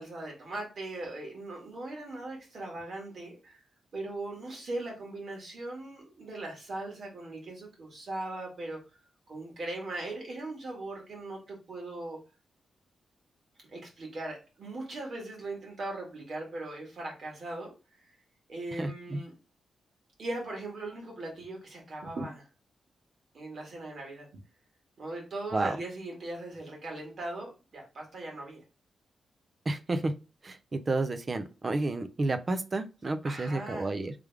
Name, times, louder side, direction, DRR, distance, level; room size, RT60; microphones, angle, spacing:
voice 1, 0.0-3.6 3.9-8.8 9.3-12.2 13.7-17.7 18.5-19.3 20.2-22.5 23.3-24.3 25.0-28.6 33.2-33.9, right 2 dB, 50° right, 1.9 m, -39 dB
voice 2, 18.8-19.2 25.5-25.8 29.7-30.1 30.4-34.1, right 2 dB, 30° right, 0.5 m, -31 dB
3.4 x 3.4 x 3.4 m
wide cardioid pair, 125°, 0 cm